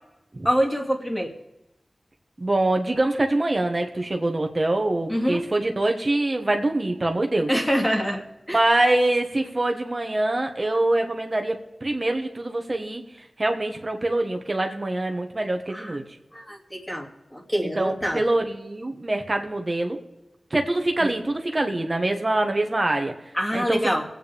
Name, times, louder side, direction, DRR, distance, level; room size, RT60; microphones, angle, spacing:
voice 1, 0.4-1.3 5.1-5.4 7.5-8.6 15.7-16.0 16.3-18.2 21.0-21.1 23.3-24.0, equal, 10° left, 1 dB, 2.7 m, -25 dB
voice 2, 2.4-7.5 8.5-16.0 17.8-20.0 20.5-23.1 23.5-24.0, right 2 dB, 40° right, 4 dB, 1.5 m, -24 dB
23.0 x 8.9 x 3.6 m, 0.99 s
cardioid pair, 50°, 0 cm